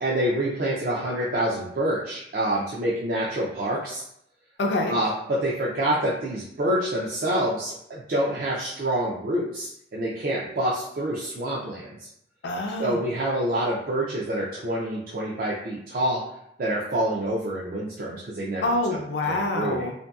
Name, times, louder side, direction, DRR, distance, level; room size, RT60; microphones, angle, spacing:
voice 1, 0.0-4.0 4.9-12.1 12.8-16.2 16.6-18.6 19.2-19.9, right 1 dB, 50° right, -6 dB, 0.4 m, -27 dB
voice 2, 4.6-5.0 12.4-13.0 18.6-19.9, left 2 dB, 65° left, 2 dB, 0.4 m, -26 dB
2.6 x 2.6 x 2.3 m, 0.74 s
head